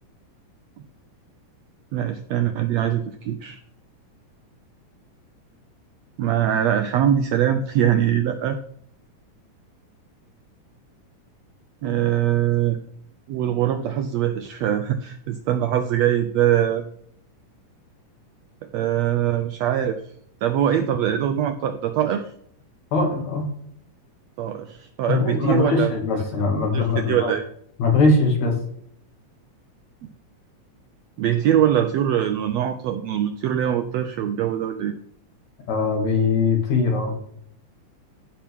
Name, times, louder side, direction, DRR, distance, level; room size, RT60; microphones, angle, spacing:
voice 1, 1.9-3.6 6.2-8.6 11.8-12.8 13.3-16.8 18.6-20.0 20.4-22.3 24.4-25.9 26.7-27.4 30.0-30.1 31.2-34.9, right 10 dB, 85° right, 8 dB, 1.5 m, -22 dB
voice 2, 22.9-23.5 25.1-27.3 27.8-28.6 35.7-37.1, left 3 dB, 60° left, 1 dB, 3.5 m, -21 dB
15.0 x 5.9 x 3.6 m, 0.66 s
omnidirectional pair, 3.8 m